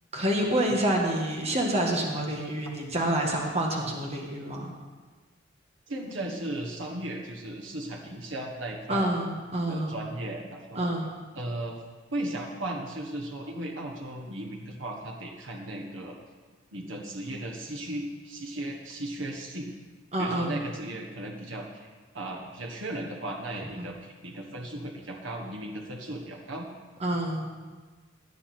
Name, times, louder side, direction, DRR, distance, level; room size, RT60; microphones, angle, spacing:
voice 1, 0.1-4.7 8.9-9.9 10.7-11.1 20.1-20.6 23.8-23.9 27.0-27.5, right 1 dB, 35° right, 0 dB, 1.6 m, -28 dB
voice 2, 5.9-9.1 9.7-10.9 11.3-11.8 12.1-16.2 16.7-19.7 20.2-21.9 22.1-26.7, right 1 dB, 80° right, 0 dB, 1.4 m, -36 dB
17.0 x 9.6 x 4.4 m, 1.4 s
head